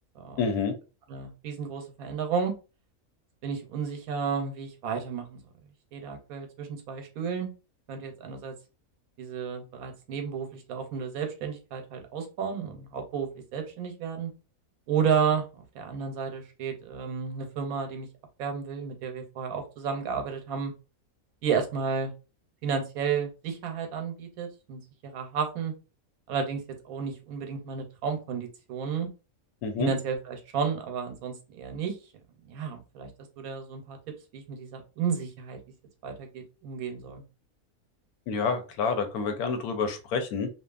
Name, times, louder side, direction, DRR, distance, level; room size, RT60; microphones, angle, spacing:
voice 1, 0.4-0.8 29.6-29.9 38.3-40.5, left 5 dB, 85° left, 7 dB, 1.1 m, -28 dB
voice 2, 1.1-2.5 3.4-5.4 5.9-7.5 7.9-8.5 9.2-14.3 14.9-18.1 18.4-20.7 21.4-22.1 22.6-25.7 26.3-29.1 29.8-32.0 32.5-33.1 33.4-34.0 34.3-35.6 36.0-37.2, right 6 dB, 80° right, 5 dB, 1.1 m, -32 dB
2.7 x 2.4 x 2.3 m, 0.31 s
omnidirectional pair, 1.5 m